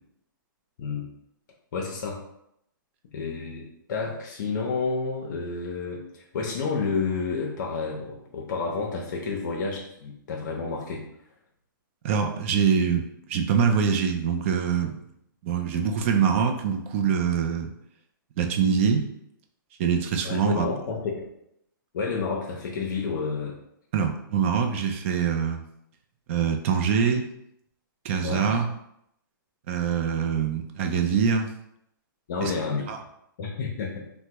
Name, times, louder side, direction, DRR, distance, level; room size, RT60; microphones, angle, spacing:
voice 1, 0.8-1.1 1.7-2.2 3.1-11.0 20.2-21.3 21.9-23.6 28.2-28.5 32.3-32.9 33.4-34.1, left 4 dB, 60° left, -1 dB, 0.6 m, -30 dB
voice 2, 12.0-15.0 15.4-17.7 18.4-19.0 19.8-20.7 23.9-25.7 26.3-27.2 28.0-28.7 29.7-31.5 32.4-32.5 32.9-33.0, right 6 dB, 35° right, 4 dB, 0.4 m, -24 dB
3.3 x 2.1 x 2.9 m, 0.76 s
hypercardioid pair, 155°, 11 cm